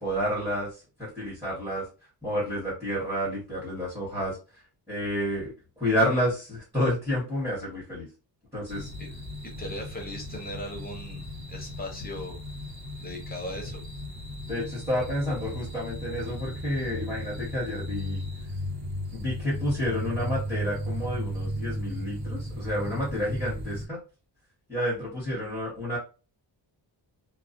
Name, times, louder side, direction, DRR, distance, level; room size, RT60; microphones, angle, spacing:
voice 1, 0.0-1.8 2.2-4.4 4.9-8.1 8.5-8.9 14.5-18.2 19.1-24.0 24.7-26.0, equal, 5° right, -9 dB, 1.0 m, -30 dB
sound 1, 8.7-23.9, equal, 55° right, 1.2 m, -35 dB
voice 2, 9.4-12.4 13.0-13.8, left 1 dB, 20° left, 1 dB, 0.6 m, -38 dB
2.3 x 2.2 x 2.5 m, 0.33 s
wide cardioid pair, 160°, 46 cm